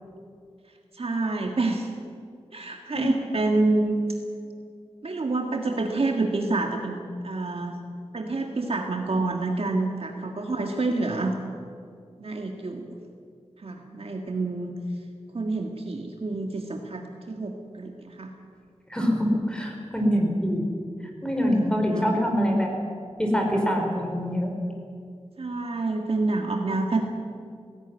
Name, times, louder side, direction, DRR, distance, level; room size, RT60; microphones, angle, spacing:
voice 1, 0.9-1.9 2.5-4.0 5.0-7.8 8.1-11.3 12.2-13.0 13.6-14.7 15.3-18.3 21.8-22.2 25.4-27.0, right 3 dB, 60° right, 2 dB, 1.7 m, -28 dB
voice 2, 18.9-20.7 21.2-22.7 23.2-24.5, equal, 5° left, 1 dB, 4.7 m, -24 dB
18.0 x 17.0 x 9.8 m, 2.4 s
wide cardioid pair, 95°, 12 cm